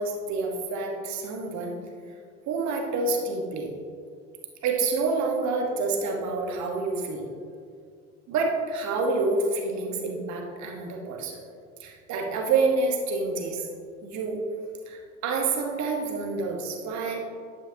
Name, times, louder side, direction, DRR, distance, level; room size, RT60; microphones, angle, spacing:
voice 1, 0.0-1.8 2.5-3.7 4.6-7.3 8.3-11.4 11.8-13.7 14.0-14.4 14.9-17.2, right 3 dB, 45° right, 2 dB, 1.3 m, -28 dB
10.5 x 8.2 x 2.8 m, 2.3 s
figure-of-eight pair, 75°, 41 cm